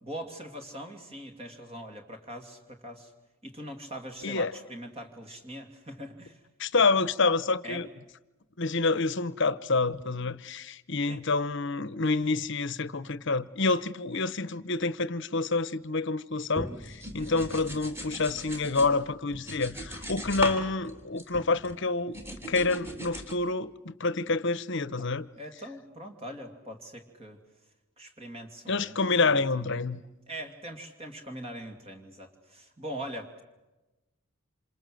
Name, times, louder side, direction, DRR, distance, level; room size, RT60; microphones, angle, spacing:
voice 1, 0.0-3.1 3.4-6.4 7.6-7.8 11.1-11.2 17.2-17.5 25.0-25.1 25.4-27.4 28.0-28.9 29.2-29.8 30.3-33.4, right 1 dB, 25° right, 2.7 m, -42 dB
voice 2, 6.6-7.9 8.6-22.2 22.5-25.3 28.7-30.0, left 3 dB, 55° left, 1.0 m, -28 dB
sound 1, 16.6-18.9 19.3-20.6 20.9-21.8 22.1-23.3, equal, 10° right, 3.4 m, -38 dB
28.0 x 27.5 x 7.9 m
head